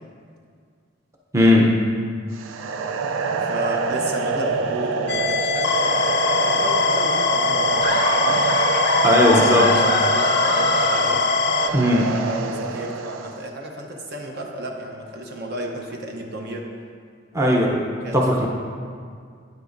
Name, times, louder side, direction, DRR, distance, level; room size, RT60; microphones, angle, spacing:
voice 1, 1.3-1.8 9.0-9.6 11.7-12.1 17.3-17.7 18.1-18.5, left 1 dB, 15° right, -2 dB, 0.7 m, -17 dB
sound 1, 2.3-13.5, right 4 dB, 75° right, 0.4 m, -27 dB
voice 2, 3.4-6.1 6.4-8.4 9.0-11.2 11.9-16.7 17.5-18.2, right 1 dB, 55° right, 1 dB, 0.9 m, -32 dB
sound 2, 5.1-11.7, left 4 dB, 60° left, 0.4 m, -22 dB
Laughter, 7.8-11.8, equal, 30° right, 1.2 m, -26 dB
9.4 x 8.2 x 2.6 m, 2.1 s
head